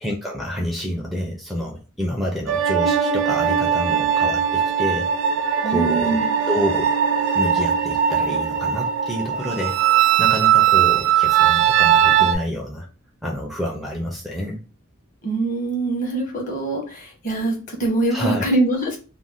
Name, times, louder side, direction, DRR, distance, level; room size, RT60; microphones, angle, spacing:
voice 1, 0.0-5.1 5.6-6.2 6.5-6.9 7.3-9.8 10.2-12.9 13.2-14.6 18.1-18.4, equal, ahead, 0 dB, 0.4 m, -28 dB
sound 1, 2.5-12.4, right 9 dB, 65° right, 0.4 m, -19 dB
voice 2, 5.6-6.3 15.2-19.0, right 2 dB, 40° left, 0 dB, 1.0 m, -23 dB
2.5 x 2.1 x 3.3 m, 0.35 s
head